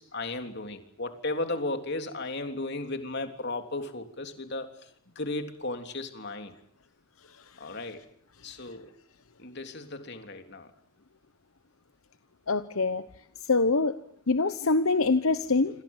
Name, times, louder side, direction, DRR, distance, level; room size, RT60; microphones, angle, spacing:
voice 1, 0.0-6.6 7.6-8.0 8.4-9.0 9.4-10.7, left 2 dB, 50° left, 6 dB, 3.5 m, -35 dB
voice 2, 12.5-13.0 13.5-13.9 14.3-15.8, left 3 dB, 75° left, 11 dB, 1.1 m, -24 dB
28.0 x 26.5 x 7.4 m, 0.66 s
head